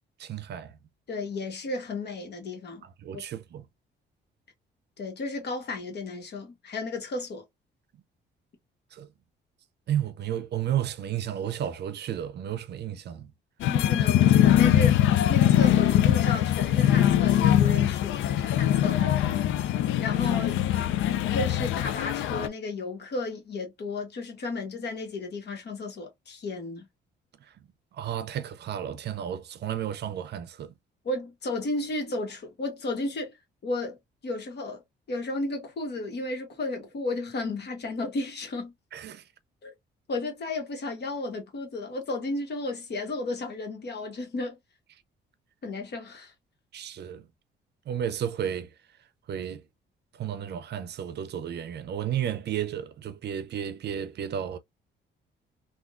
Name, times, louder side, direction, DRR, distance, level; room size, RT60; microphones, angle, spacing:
voice 1, 0.2-0.8 2.8-3.6 8.9-9.1 9.9-13.3 18.9-19.7 27.4-27.5 27.9-30.7 38.9-39.2 46.7-47.3 47.9-48.7 49.3-49.6 50.1-54.6, right 10 dB, 60° right, 0.5 m, -33 dB
voice 2, 1.1-2.8 3.1-3.2 5.0-7.4 13.7-19.1 20.0-20.6 21.3-26.8 31.0-33.3 33.6-34.0 34.2-34.8 35.1-38.7 39.6-39.7 40.1-44.6 45.6-46.3, left 2 dB, 55° left, 1.3 m, -33 dB
sound 1, 13.6-22.5, left 11 dB, 80° left, 0.4 m, -22 dB
3.5 x 2.4 x 2.4 m
cardioid pair, 90°, 20 cm